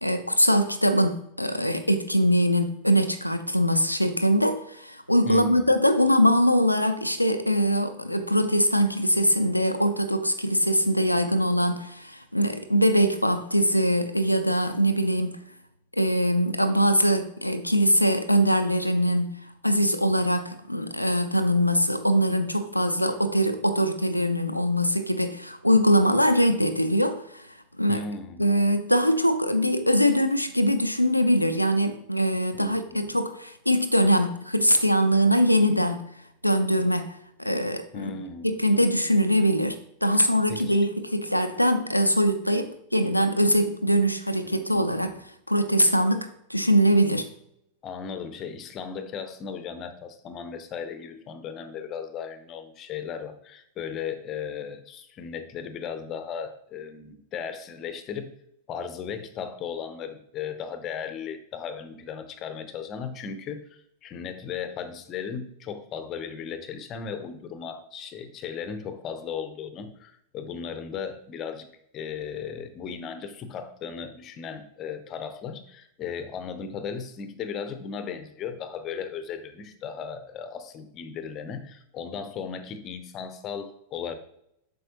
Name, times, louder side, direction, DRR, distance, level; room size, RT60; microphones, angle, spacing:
voice 1, 0.0-15.4 16.0-28.0 28.4-36.1 36.4-38.1 38.4-45.2 45.5-47.3, equal, 90° left, 0.4 m, -22 dB
voice 2, 5.3-5.7 27.9-28.5 32.6-33.2 37.9-38.7 40.5-40.8 44.4-45.1 47.8-58.3 58.7-71.7 71.9-84.1, left 6 dB, 30° left, 0.7 m, -36 dB
7.6 x 5.4 x 2.9 m
figure-of-eight pair, 90°, 0 cm